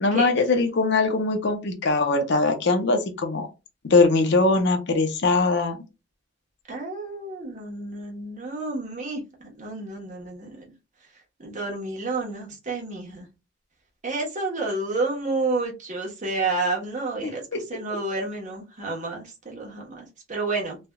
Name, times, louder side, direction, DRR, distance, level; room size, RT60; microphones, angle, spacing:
voice 1, 0.0-3.5 3.8-5.8 17.2-17.6, left 3 dB, 65° left, 0.6 m, -21 dB
voice 2, 6.7-9.2 9.6-10.6 11.4-13.3 14.0-17.4 17.7-20.8, right 3 dB, 40° right, 1.1 m, -30 dB
3.3 x 2.3 x 2.3 m
head